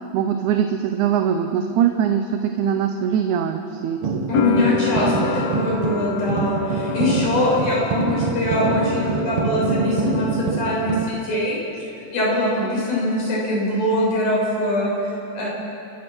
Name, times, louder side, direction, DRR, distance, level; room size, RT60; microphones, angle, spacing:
voice 1, 0.1-4.0 12.6-12.8, right 8 dB, 80° right, 6 dB, 2.3 m, -22 dB
sound 1, 4.0-11.0, right 5 dB, 60° right, 1.8 m, -25 dB
voice 2, 4.3-11.6 12.1-15.5, left 1 dB, 85° left, -5 dB, 8.3 m, -22 dB
sound 2, 4.3-11.1 11.4-12.3, left 4 dB, 65° left, 2.5 m, -30 dB
29.5 x 15.5 x 6.2 m, 2.6 s
omnidirectional pair, 3.4 m